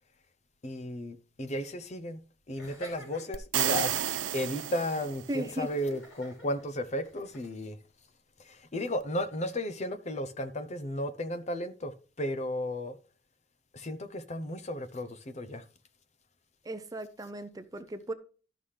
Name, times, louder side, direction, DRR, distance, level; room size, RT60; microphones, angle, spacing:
voice 1, 0.6-2.2 2.5-7.8 8.4-13.0 13.7-15.7, left 1 dB, 35° left, 0.7 m, -34 dB
Laughter, 2.6-7.5, equal, 90° left, 5.3 m, -50 dB
sound 1, 3.3-5.4, right 11 dB, 80° right, 0.5 m, -31 dB
voice 2, 5.3-5.7 16.6-18.1, right 1 dB, 20° right, 0.6 m, -36 dB
13.0 x 5.7 x 3.3 m
head